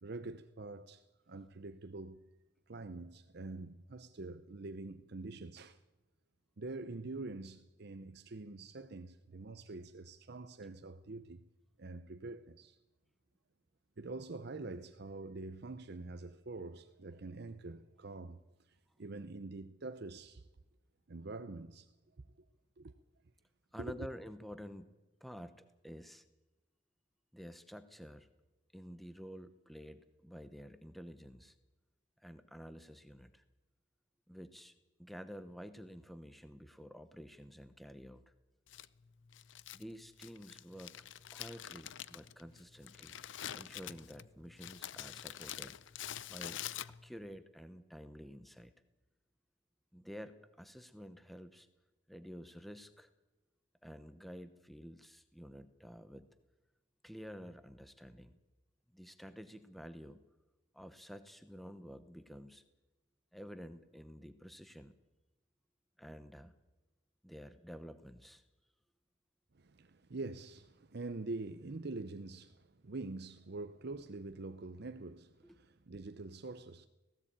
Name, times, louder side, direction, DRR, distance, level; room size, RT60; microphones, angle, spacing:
voice 1, 0.0-2.3 2.7-5.8 6.6-11.4 11.8-12.8 14.0-20.5 21.1-22.5 22.8-23.0 23.8-24.1 69.5-76.9, right 3 dB, 55° right, 0.7 m, -45 dB
voice 2, 23.7-24.9 25.2-26.2 27.3-28.3 28.7-31.6 32.2-33.4 34.3-34.7 35.0-38.3 39.7-40.9 41.3-43.2 43.5-45.8 46.3-48.7 49.9-51.7 52.1-53.1 53.8-56.3 57.0-58.4 58.9-60.2 60.7-62.6 63.3-64.9 66.0-66.5 67.2-68.4 75.4-75.6, equal, ahead, 0.8 m, -50 dB
Crumpling crinkling, 38.7-47.3, left 11 dB, 70° left, 0.6 m, -47 dB
18.0 x 16.5 x 8.8 m
head